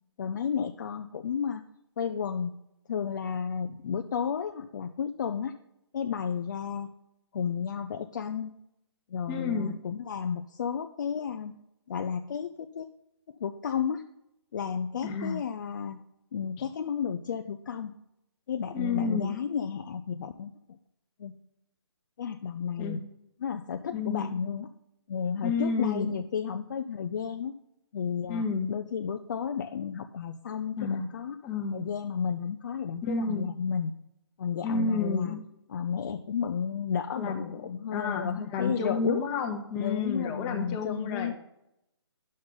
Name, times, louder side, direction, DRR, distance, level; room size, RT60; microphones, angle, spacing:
voice 1, 0.2-1.6 2.0-2.5 2.9-5.6 5.9-6.9 7.3-8.6 9.1-11.6 11.9-12.9 13.3-14.1 14.5-16.0 16.3-17.9 18.5-20.8 21.2-21.3 22.2-23.0 23.4-24.7 25.1-27.6 27.9-31.4 31.7-33.9 34.4-35.4 35.7-39.2 39.8-41.3, left 7 dB, 45° left, 7 dB, 0.4 m, -32 dB
voice 2, 9.3-9.7 15.0-15.4 16.6-16.7 18.7-19.4 22.8-23.0 23.9-24.4 25.4-26.2 28.3-28.7 30.8-31.1 31.4-31.8 33.0-33.5 34.6-35.4 37.2-37.5 37.9-41.3, left 4 dB, 20° left, 3 dB, 1.0 m, -30 dB
9.5 x 6.4 x 3.9 m, 0.83 s
hypercardioid pair, 150°, 14 cm